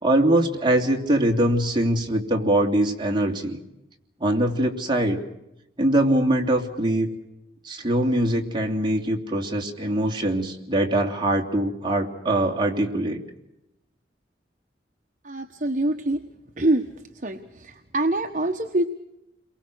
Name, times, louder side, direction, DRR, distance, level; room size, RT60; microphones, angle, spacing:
voice 1, 0.0-3.6 4.2-5.2 5.8-7.1 7.6-13.2, right 1 dB, 25° right, 2 dB, 3.0 m, -22 dB
voice 2, 15.2-16.2 16.6-16.8 17.2-18.8, right 1 dB, 45° right, 4 dB, 1.3 m, -24 dB
30.0 x 23.0 x 6.4 m, 0.88 s
head